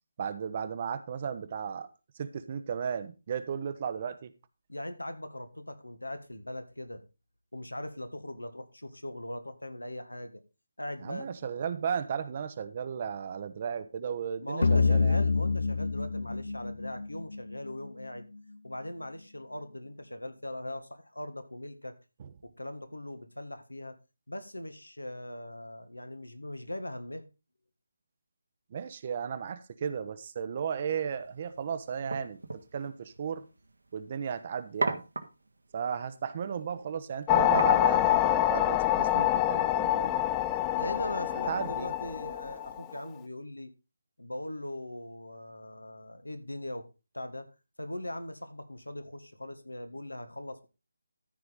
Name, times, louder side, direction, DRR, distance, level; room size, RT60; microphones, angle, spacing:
voice 1, 0.2-1.9 2.2-4.3 11.0-15.2 22.2-22.3 28.7-33.4 33.9-35.0 35.7-40.3 41.5-41.9, right 7 dB, 35° right, 0.9 m, -35 dB
voice 2, 4.7-7.0 7.5-10.4 10.8-11.5 14.4-18.3 18.6-21.9 22.4-24.0 24.3-27.3 40.8-43.7 44.2-46.9 47.1-47.5 47.8-50.7, left 1 dB, 85° left, 1.6 m, -40 dB
sound 1, 14.6-17.9, left 4 dB, 65° left, 0.7 m, -27 dB
sound 2, 31.1-38.8, right 3 dB, 70° right, 1.6 m, -40 dB
sound 3, 37.3-43.0, left 14 dB, 15° left, 0.4 m, -26 dB
14.0 x 4.7 x 5.1 m
figure-of-eight pair, 150°, 0 cm